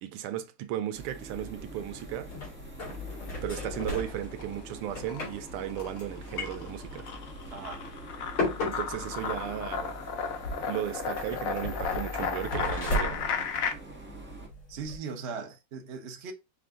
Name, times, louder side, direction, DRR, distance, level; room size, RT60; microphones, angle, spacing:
voice 1, 0.0-2.3 3.4-7.1 8.6-10.0 10.7-13.2, right 11 dB, 85° right, 1.6 m, -35 dB
sound 1, 0.9-14.5, right 3 dB, 10° right, 0.8 m, -46 dB
sound 2, 1.3-15.0, left 2 dB, 70° left, 2.9 m, -37 dB
sound 3, 3.8-4.6 4.9-13.7, left 6 dB, 90° left, 0.7 m, -35 dB
voice 2, 7.5-7.9 14.7-16.3, right 5 dB, 65° right, 0.6 m, -39 dB
5.7 x 2.6 x 3.6 m
omnidirectional pair, 2.4 m